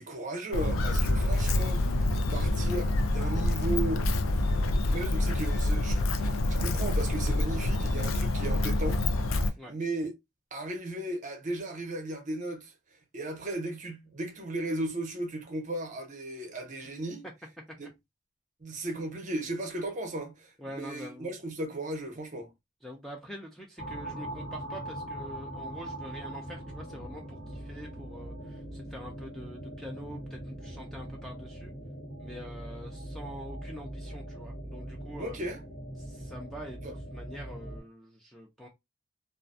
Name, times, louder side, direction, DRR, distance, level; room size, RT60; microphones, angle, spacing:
voice 1, 0.0-4.1 4.9-9.0 9.4-10.1 10.5-17.2 17.8-17.9 18.6-22.5 35.2-35.6 36.8-36.9, right 2 dB, 35° right, 0.6 m, -36 dB
Walk footsteps, 0.5-9.5, left 2 dB, 80° left, 0.4 m, -27 dB
voice 2, 20.6-21.4 22.8-31.7 32.2-35.4 36.0-38.7, equal, ahead, 0.3 m, -45 dB
sound 1, 23.8-37.8, right 1 dB, 50° left, 1.2 m, -41 dB
2.3 x 2.2 x 2.4 m
head